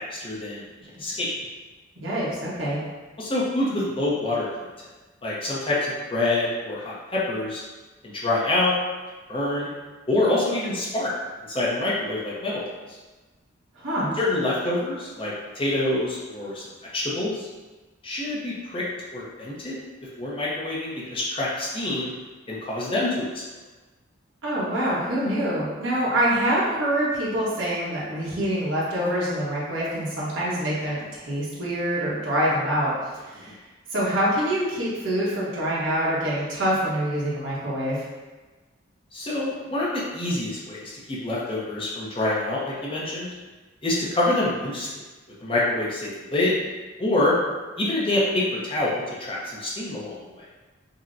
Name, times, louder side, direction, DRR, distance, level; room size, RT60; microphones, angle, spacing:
voice 1, 0.1-0.6 1.0-1.3 3.2-4.7 5.2-7.6 8.1-8.7 9.3-9.7 10.1-11.1 11.5-12.6 14.2-16.6 16.9-17.5 18.0-18.8 19.1-19.8 20.2-22.1 22.5-23.4 39.1-43.3 43.8-44.9 45.4-46.6 47.0-47.4 47.8-50.4, left 2 dB, 25° left, -6 dB, 0.7 m, -26 dB
voice 2, 2.0-2.8 13.8-14.1 24.4-32.9 33.2-33.6 33.9-38.0, right 1 dB, 70° right, -7 dB, 1.2 m, -25 dB
5.4 x 2.2 x 2.6 m, 1.2 s
head